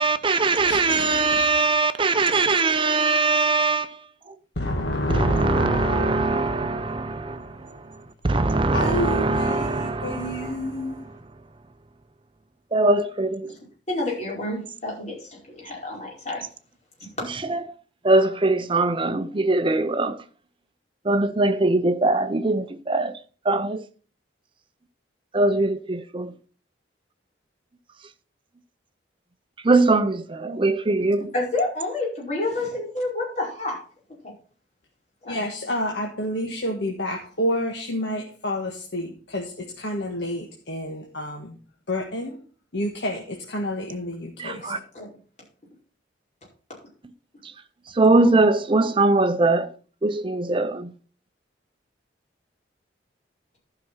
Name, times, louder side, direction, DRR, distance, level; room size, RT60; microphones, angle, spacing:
voice 1, 0.0-3.9 5.1-7.5 8.2-10.7 12.7-13.5 17.5-17.6 18.0-20.2 21.1-23.2 23.5-23.9 25.3-26.3 29.6-31.3 44.4-44.8 48.0-49.7 50.0-50.9, right 3 dB, 25° right, 0.7 m, -21 dB
voice 2, 0.6-1.6 4.6-7.3 8.7-11.0 35.3-41.5 41.9-42.4 42.7-44.8, left 1 dB, 65° left, 1.5 m, -29 dB
voice 3, 13.9-16.4 31.3-33.8 34.2-34.3 35.3-35.4 44.4-45.1, left 2 dB, 40° left, 4.8 m, -29 dB
12.0 x 5.8 x 5.6 m
head